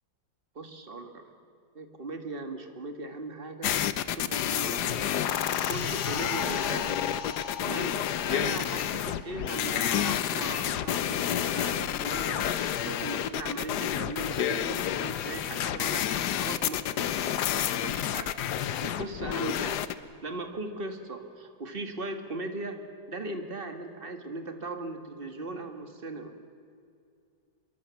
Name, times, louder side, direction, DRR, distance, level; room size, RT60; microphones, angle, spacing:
voice 1, 0.6-1.2 1.7-3.7 4.1-5.1 5.5-7.0 7.6-8.0 8.3-19.8 20.2-22.8 23.1-26.4, right 2 dB, 30° right, 6 dB, 1.9 m, -38 dB
sound 1, 3.6-19.9, left 10 dB, 65° left, 1.2 m, -29 dB
sound 2, 5.3-10.3 10.6-10.8, left 8 dB, 50° left, 0.9 m, -39 dB
25.5 x 23.0 x 7.1 m, 2.3 s
omnidirectional pair, 2.1 m